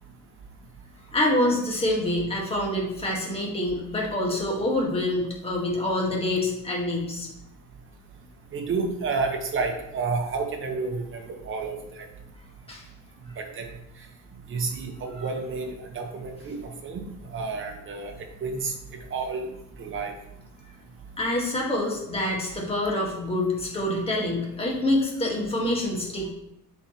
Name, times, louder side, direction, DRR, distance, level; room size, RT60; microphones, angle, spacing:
voice 1, 1.1-7.3 12.7-12.9 15.2-15.3 21.2-26.3, left 1 dB, 15° left, -2 dB, 1.6 m, -26 dB
voice 2, 8.5-12.1 13.4-13.7 14.5-15.7 15.9-16.6 16.8-17.0 17.3-18.1 18.4-18.7 19.1-19.5 19.8-20.1, right 4 dB, 35° right, 3 dB, 1.1 m, -30 dB
8.0 x 4.7 x 2.9 m, 0.79 s
cardioid pair, 155°, 35 cm